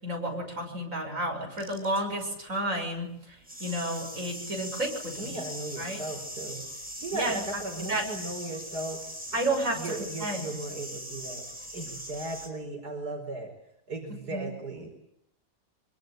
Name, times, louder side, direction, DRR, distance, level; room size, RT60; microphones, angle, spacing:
voice 1, 0.0-5.4 5.8-6.0 7.1-8.1 9.3-9.9 10.2-10.5 14.1-14.5, right 1 dB, 55° right, 2 dB, 6.9 m, -32 dB
sound 1, 1.6-2.3 3.4-12.5, equal, 5° right, 4.9 m, -40 dB
voice 2, 5.2-6.6 7.0-13.5 13.9-15.0, right 2 dB, 80° right, 2 dB, 5.3 m, -37 dB
25.0 x 24.5 x 9.2 m, 0.75 s
omnidirectional pair, 1.7 m